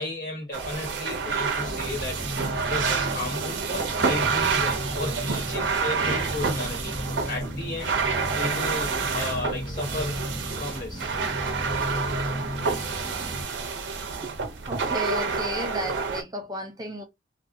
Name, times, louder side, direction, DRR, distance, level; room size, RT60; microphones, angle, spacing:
voice 1, 0.0-2.2 2.7-6.9 7.3-8.0 8.3-11.1, left 2 dB, 50° left, 1.3 m, -34 dB
sound 1, 0.5-16.2, right 5 dB, 80° right, 0.6 m, -28 dB
sound 2, 1.6-13.4, equal, 5° left, 0.9 m, -35 dB
voice 2, 14.7-17.0, equal, 20° right, 0.5 m, -33 dB
2.6 x 2.3 x 2.5 m
head